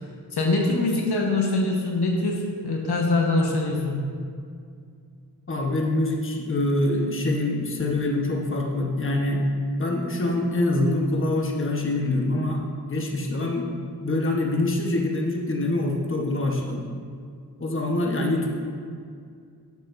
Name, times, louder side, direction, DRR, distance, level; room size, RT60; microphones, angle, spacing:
voice 1, 0.3-4.0, left 2 dB, 70° left, 0 dB, 1.3 m, -23 dB
voice 2, 5.5-9.4 9.8-12.6 12.9-13.7 14.0-16.9 17.6-18.5, left 2 dB, 30° left, 0 dB, 1.1 m, -25 dB
10.5 x 7.5 x 2.6 m, 2.3 s
cardioid pair, 45°, 41 cm